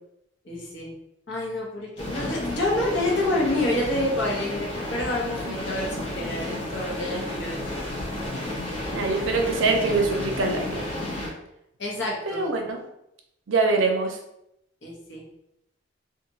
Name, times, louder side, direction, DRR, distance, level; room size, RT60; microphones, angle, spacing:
voice 1, 0.4-0.9 1.3-7.6 11.8-12.4 14.8-15.2, left 1 dB, 65° left, -3 dB, 0.9 m, -28 dB
sound 1, 2.0-11.3, left 1 dB, 30° left, 0.6 m, -32 dB
voice 2, 5.2-5.8 8.9-10.9 12.3-12.8 13.5-14.2, right 3 dB, 80° right, 3 dB, 0.5 m, -24 dB
2.8 x 2.4 x 2.7 m, 0.81 s
head